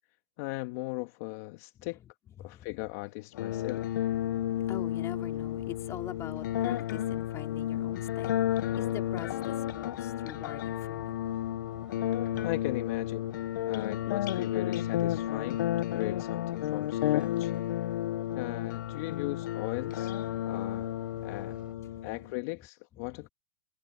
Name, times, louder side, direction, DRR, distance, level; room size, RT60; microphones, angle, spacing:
voice 1, 0.4-2.0 2.4-3.9 12.4-13.3 13.7-17.5 18.3-20.1 20.5-20.9 21.2-21.6 22.0-23.3, left 24 dB, 50° left, 1.6 m, -38 dB
sound 1, 3.3-22.3, left 13 dB, 70° left, 0.7 m, -32 dB
sound 2, 3.5-21.8, right 4 dB, 10° right, 7.5 m, -56 dB
voice 2, 4.2-11.1 20.3-20.6 21.1-21.5 21.9-22.1 23.0-23.1, left 11 dB, 25° left, 3.9 m, -44 dB
hypercardioid pair, 135°, 11 cm